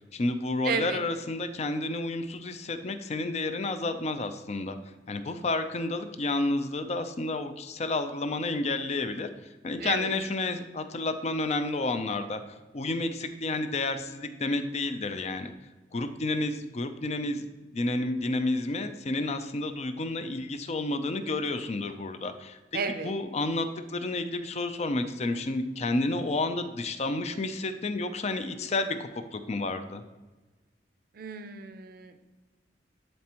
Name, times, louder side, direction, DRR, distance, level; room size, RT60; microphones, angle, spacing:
voice 1, 0.1-4.8 5.1-9.3 9.6-15.5 15.9-17.5 17.7-22.6 23.0-30.0, left 2 dB, 40° left, 9 dB, 0.5 m, -30 dB
voice 2, 0.6-1.0 9.8-10.1 22.7-23.1 31.1-32.2, right 5 dB, 55° right, 9 dB, 0.5 m, -32 dB
11.0 x 4.2 x 3.0 m, 1.2 s
head